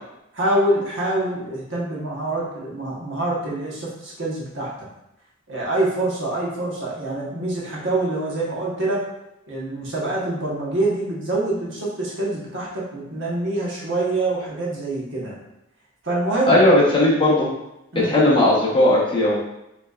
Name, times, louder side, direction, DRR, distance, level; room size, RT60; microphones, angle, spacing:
voice 1, 0.3-4.9 5.5-9.0 9.5-15.3 16.0-16.6 17.9-18.3, right 2 dB, 60° right, -5 dB, 1.3 m, -25 dB
voice 2, 16.5-17.5 18.0-19.4, left 1 dB, 25° left, -6 dB, 1.1 m, -16 dB
5.3 x 3.4 x 2.5 m, 0.87 s
head